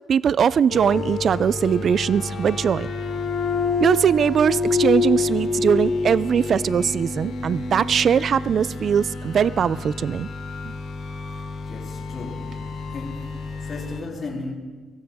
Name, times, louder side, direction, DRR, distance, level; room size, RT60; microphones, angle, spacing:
voice 1, 0.1-2.9 3.8-10.3 10.6-10.7, right 7 dB, 55° right, 0.4 m, -21 dB
sound 1, 0.7-14.0, left 4 dB, 75° left, 3.5 m, -28 dB
voice 2, 11.7-14.5, left 3 dB, 50° left, 3.4 m, -36 dB
23.0 x 15.5 x 3.7 m
cardioid pair, 90°, 0 cm